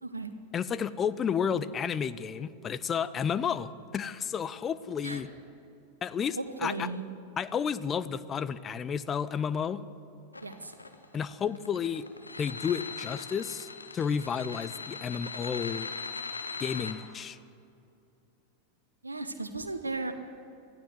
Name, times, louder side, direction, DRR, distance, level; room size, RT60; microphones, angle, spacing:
voice 1, 0.0-0.3 5.0-5.2 6.4-7.0 10.4-10.7 19.0-20.1, right 3 dB, 80° right, 7 dB, 1.1 m, -35 dB
voice 2, 0.5-5.3 6.0-6.9 7.4-9.8 11.1-12.1 12.4-13.7 13.9-16.0 16.6-17.4, left 7 dB, 25° left, 15 dB, 0.7 m, -31 dB
sound 1, 10.3-16.9, left 4 dB, 80° left, 1.6 m, -39 dB
24.5 x 15.0 x 7.8 m, 2.7 s
figure-of-eight pair, 90°, 0 cm